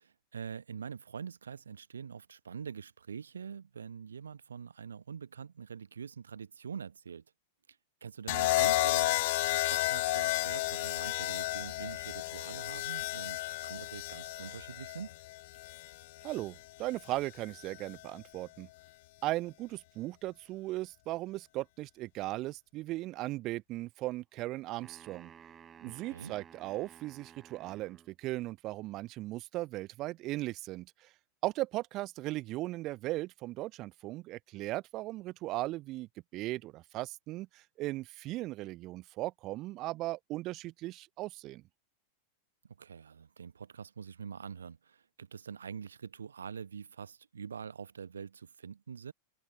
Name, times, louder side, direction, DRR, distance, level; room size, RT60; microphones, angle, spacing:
voice 1, 0.0-7.2 8.0-15.1 25.8-26.3 42.8-49.1, right 7 dB, 70° right, 1.1 m, -45 dB
sound 1, 8.3-16.4 17.6-18.0, left 20 dB, 50° left, 0.5 m, -32 dB
voice 2, 16.2-18.7 19.2-25.3 25.8-31.1 31.4-41.6, right 18 dB, 35° right, 0.5 m, -37 dB
sound 2, 24.8-28.1, right 8 dB, 20° right, 4.0 m, -55 dB
figure-of-eight pair, 90°, 0 cm